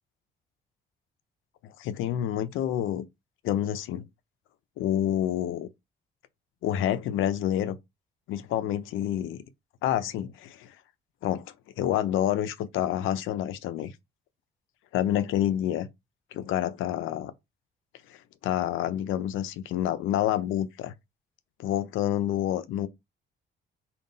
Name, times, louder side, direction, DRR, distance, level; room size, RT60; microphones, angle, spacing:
voice 1, 1.6-3.1 3.4-4.0 4.8-5.7 6.6-7.8 8.3-9.4 9.8-10.7 11.2-11.4 11.8-13.9 14.9-15.9 16.3-17.3 18.1-18.2 18.4-20.9 21.6-22.9, left 11 dB, 85° left, 0.5 m, -28 dB
3.7 x 2.4 x 3.8 m
cardioid pair, 90°, 20 cm